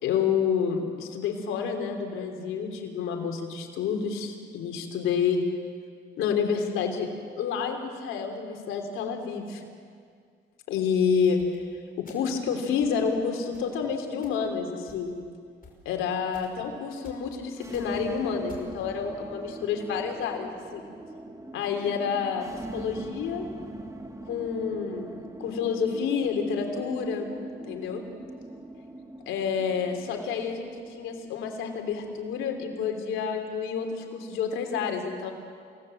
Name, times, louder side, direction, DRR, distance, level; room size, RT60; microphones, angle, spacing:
voice 1, 0.0-5.4 6.2-7.1 7.3-9.6 10.7-15.2 15.8-20.8 21.5-22.4 22.7-23.5 24.3-25.1 25.4-27.3 27.7-28.0 29.3-35.3, left 6 dB, 90° left, 3 dB, 3.3 m, -29 dB
sound 1, 11.4-11.5 12.0-12.4 12.8-13.0 13.5-13.7 14.2-14.4 14.8-15.2 15.6-15.7 16.3-16.6 17.0-17.2 17.6-18.0 18.5-18.8, left 5 dB, 45° left, 5.4 m, -50 dB
sound 2, 17.5-33.6, right 1 dB, 15° right, 1.9 m, -43 dB
28.5 x 18.0 x 7.8 m, 2.2 s
cardioid pair, 90°, 20 cm